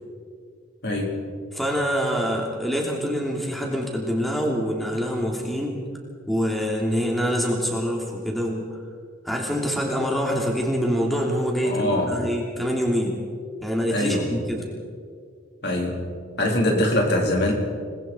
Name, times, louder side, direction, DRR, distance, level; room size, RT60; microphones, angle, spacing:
voice 1, 0.8-1.2 11.6-12.2 13.9-14.4 15.6-16.1 16.4-17.5, left 1 dB, 50° left, 0 dB, 4.1 m, -23 dB
voice 2, 1.5-5.8 6.3-8.7 9.2-13.2 13.6-14.7, equal, ahead, -1 dB, 3.0 m, -25 dB
28.0 x 21.0 x 4.6 m, 2.2 s
head